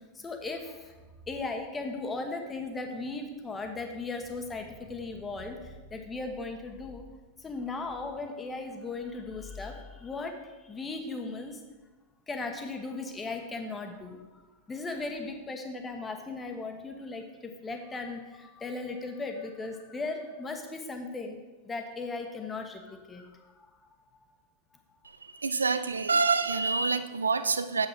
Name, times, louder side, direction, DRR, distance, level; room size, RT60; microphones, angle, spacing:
voice 1, 0.1-0.9 1.3-7.0 7.4-10.3 10.6-11.6 12.3-14.4 14.7-21.4 21.6-23.7, left 3 dB, 15° left, 4 dB, 1.2 m, -37 dB
voice 2, 25.4-27.9, right 4 dB, 75° right, 12 dB, 0.5 m, -26 dB
8.7 x 7.5 x 4.7 m, 1.2 s
figure-of-eight pair, 90°, 0 cm